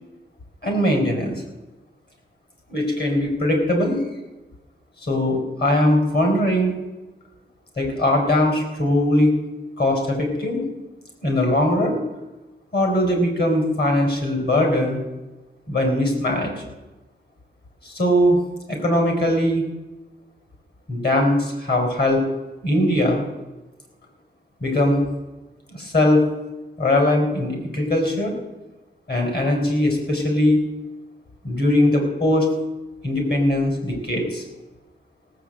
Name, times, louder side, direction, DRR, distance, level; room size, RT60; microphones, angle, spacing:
voice 1, 0.6-1.4 2.7-4.0 5.0-6.7 7.8-9.3 9.8-10.7 11.2-12.0 12.7-15.0 15.7-16.5 17.8-18.4 18.7-19.6 20.9-22.2 22.6-23.2 24.6-25.1 25.7-26.2 26.8-28.3 29.1-30.6 31.4-32.5 33.0-34.4, left 1 dB, 60° left, 1 dB, 4.7 m, -20 dB
17.0 x 8.0 x 7.7 m, 1.1 s
wide cardioid pair, 115°, 19 cm